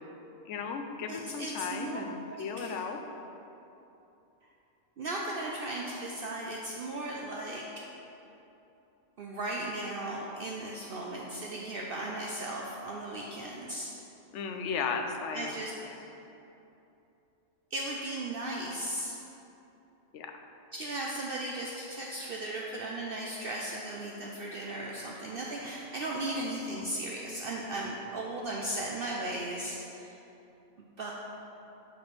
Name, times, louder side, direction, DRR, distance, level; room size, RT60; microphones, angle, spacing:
voice 1, 0.5-3.0 14.3-15.5 15.8-16.0 20.1-20.3, left 5 dB, 70° left, 5 dB, 0.9 m, -35 dB
voice 2, 1.1-2.0 2.3-2.8 5.0-7.7 9.2-13.9 15.3-16.0 17.7-19.2 20.7-30.2 31.0-31.1, right 1 dB, 60° right, -3 dB, 0.6 m, -36 dB
5.1 x 4.2 x 6.0 m, 2.9 s
omnidirectional pair, 1.3 m